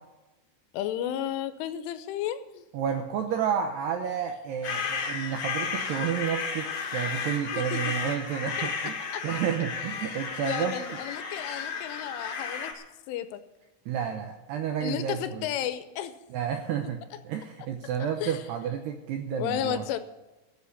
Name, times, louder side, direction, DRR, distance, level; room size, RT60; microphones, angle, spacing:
voice 1, 0.7-2.7 7.5-7.9 8.6-8.7 9.1-9.4 10.0-10.2 10.5-13.4 14.8-16.1 16.8-16.9 18.2-18.4 19.3-20.0, left 11 dB, 80° left, 11 dB, 3.1 m, -33 dB
voice 2, 2.7-10.8 13.9-15.5 16.3-19.8, right 8 dB, 80° right, 5 dB, 2.4 m, -31 dB
sound 1, 4.6-12.7, left 5 dB, 55° left, 2.0 m, -33 dB
14.5 x 7.7 x 8.5 m, 1.1 s
omnidirectional pair, 5.9 m